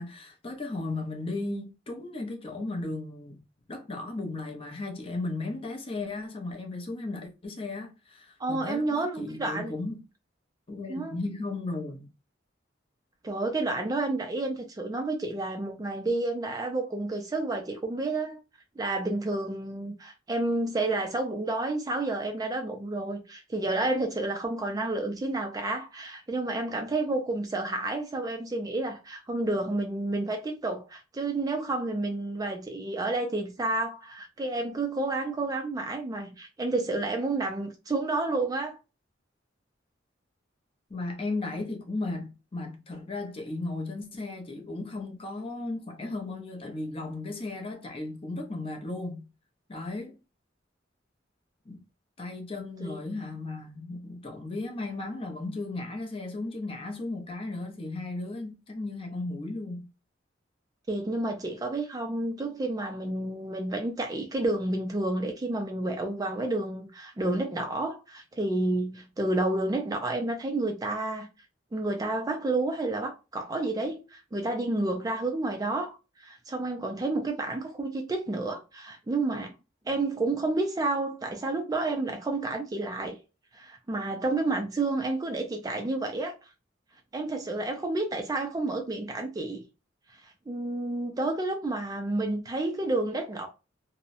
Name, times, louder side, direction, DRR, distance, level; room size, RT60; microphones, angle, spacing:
voice 1, 0.0-3.4 3.7-10.0 10.7-12.1 40.9-49.3 49.7-50.2 51.7-51.8 52.2-59.9, left 2 dB, 30° left, 0.5 m, -35 dB
voice 2, 8.4-9.7 10.9-11.2 13.2-18.4 18.8-38.8 52.8-53.0 60.9-71.3 71.7-79.5 79.9-83.2 83.5-86.3 87.1-89.6 90.1-93.5, right 2 dB, 20° right, 0.3 m, -30 dB
2.7 x 2.0 x 2.5 m
head